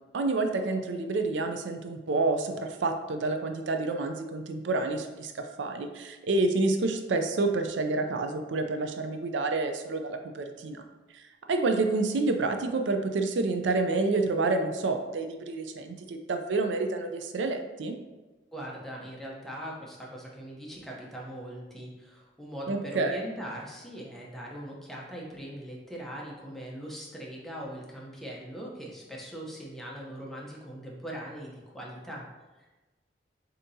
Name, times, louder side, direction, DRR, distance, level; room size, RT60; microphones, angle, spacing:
voice 1, 0.1-10.8 11.1-11.2 11.5-18.0 22.7-23.2, right 3 dB, 75° right, 6 dB, 0.4 m, -28 dB
voice 2, 18.5-32.2 32.6-32.7, equal, ahead, -3 dB, 0.7 m, -41 dB
7.0 x 2.8 x 2.7 m, 1.2 s
head